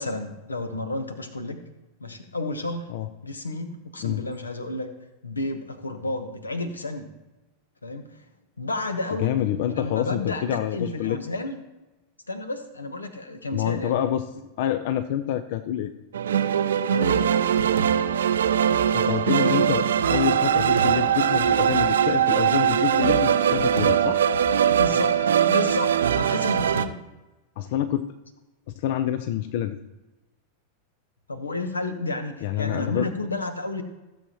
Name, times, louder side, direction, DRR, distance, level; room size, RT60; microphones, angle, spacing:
voice 1, 0.0-1.6 2.0-2.9 3.2-4.9 5.2-7.1 7.8-8.2 8.6-9.3 9.7-11.6 12.3-13.9 16.9-17.3 24.8-27.0 31.3-33.8, left 2 dB, 80° left, 9 dB, 1.1 m, -31 dB
voice 2, 9.2-11.2 13.5-14.3 14.6-15.9 18.9-24.2 27.6-28.1 28.8-29.8 32.4-33.1, left 11 dB, 50° left, 12 dB, 0.5 m, -27 dB
sound 1, 16.1-26.9, right 8 dB, 65° right, 0.5 m, -21 dB
15.5 x 7.3 x 3.0 m, 1.1 s
figure-of-eight pair, 90°, 0 cm